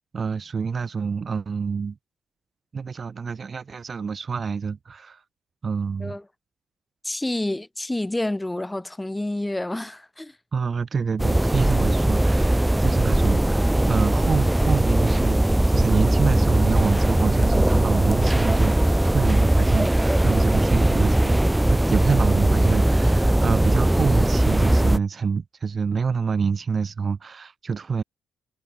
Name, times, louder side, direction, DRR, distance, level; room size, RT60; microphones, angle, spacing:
voice 1, 0.0-2.0 2.7-5.2 5.6-6.2 10.5-28.0, right 5 dB, 40° right, 2.5 m, -27 dB
voice 2, 7.0-10.4, left 1 dB, 10° left, 4.2 m, -28 dB
sound 1, 11.2-25.0, right 1 dB, 10° right, 1.7 m, -19 dB
cardioid pair, 90°, 0 cm